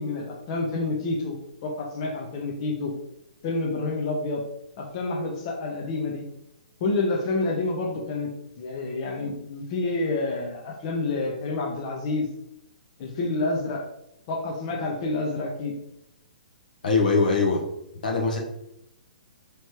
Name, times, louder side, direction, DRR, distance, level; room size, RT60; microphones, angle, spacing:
voice 1, 0.0-2.9 3.4-4.4 4.8-6.2 6.8-8.3 8.6-12.3 13.0-13.8 14.3-15.7, left 3 dB, 40° left, 0 dB, 0.9 m, -28 dB
voice 2, 16.8-17.6 18.0-18.4, left 4 dB, 70° left, 1 dB, 0.9 m, -22 dB
3.3 x 3.2 x 4.5 m, 0.80 s
figure-of-eight pair, 125°, 5 cm